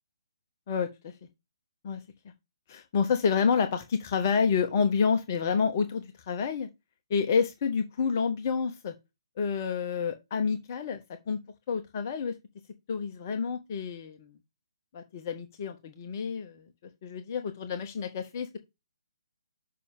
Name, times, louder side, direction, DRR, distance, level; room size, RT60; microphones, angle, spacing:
voice 1, 0.7-1.1 1.8-2.0 2.7-6.7 7.1-8.9 9.4-11.0 11.3-11.4 11.7-12.3 12.9-14.3 14.9-16.6 17.0-18.6, left 6 dB, 35° left, 1.0 m, -29 dB
6.6 x 5.5 x 3.6 m
figure-of-eight pair, 135°, 3 cm